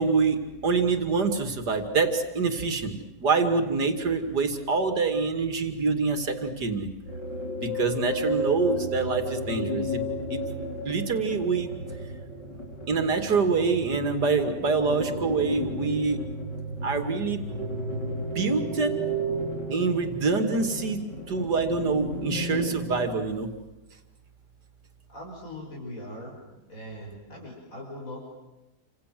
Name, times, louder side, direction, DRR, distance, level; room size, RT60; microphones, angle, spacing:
voice 1, 0.0-2.9 3.2-6.9 7.6-10.0 10.3-10.4 10.8-11.7 12.9-16.2 16.8-17.4 18.3-18.9 19.7-21.0 21.3-23.5, right 4 dB, 70° right, 7 dB, 3.1 m, -25 dB
sound 1, 7.0-23.1, equal, 90° left, 5.8 m, -33 dB
voice 2, 25.1-26.4 26.7-28.2, left 1 dB, 50° left, -2 dB, 6.0 m, -40 dB
29.0 x 26.5 x 7.7 m, 1.0 s
omnidirectional pair, 1.8 m